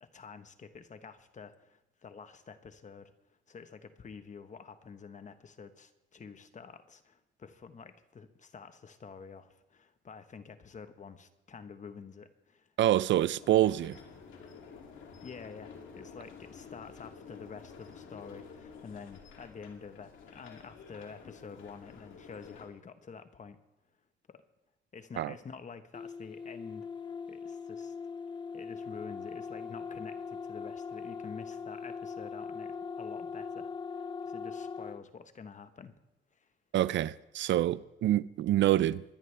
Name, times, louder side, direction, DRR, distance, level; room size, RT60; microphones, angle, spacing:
voice 1, 0.0-3.1 3.5-12.7 15.2-23.6 24.3-24.4 24.9-26.9 27.3-27.9 28.5-36.0 36.3-36.5, left 5 dB, 40° left, 1.1 m, -48 dB
voice 2, 12.8-14.0 25.2-25.3 36.7-39.0, right 13 dB, 70° right, 0.5 m, -26 dB
sound 1, 13.4-22.7, left 5 dB, 75° left, 2.6 m, -50 dB
sound 2, 25.9-35.0, left 5 dB, 25° left, 0.5 m, -41 dB
22.5 x 10.5 x 3.4 m
cardioid pair, 90°, 20 cm